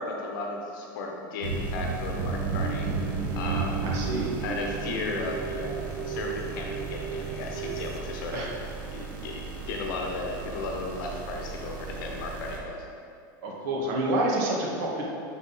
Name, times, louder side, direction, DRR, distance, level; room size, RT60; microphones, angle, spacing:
voice 1, 0.0-2.9 3.4-3.9 4.4-8.5 8.9-12.8, left 3 dB, 75° left, 1 dB, 0.9 m, -35 dB
sound 1, 1.4-12.6, right 4 dB, 85° right, 1.4 m, -35 dB
sound 2, 2.3-8.0, right 7 dB, 30° right, 0.4 m, -36 dB
voice 2, 3.8-4.3 8.3-8.5 13.4-15.0, right 1 dB, 65° right, -2 dB, 1.6 m, -28 dB
9.9 x 3.9 x 4.0 m, 2.5 s
supercardioid pair, 140°, 11 cm